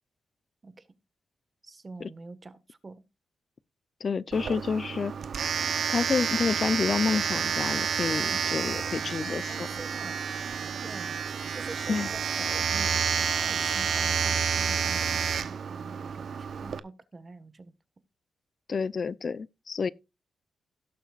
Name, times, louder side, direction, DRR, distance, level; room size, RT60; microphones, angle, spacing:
voice 1, 1.6-3.0 9.5-10.2 10.7-11.2 11.5-17.7, right 3 dB, 40° right, 1.5 m, -46 dB
voice 2, 4.0-5.1 5.9-9.7 11.9-12.1 18.7-19.9, left 5 dB, 55° left, 0.5 m, -29 dB
Domestic sounds home sounds, 4.3-16.8, right 7 dB, 70° right, 0.7 m, -29 dB
17.5 x 7.1 x 2.4 m
cardioid pair, 65°, 0 cm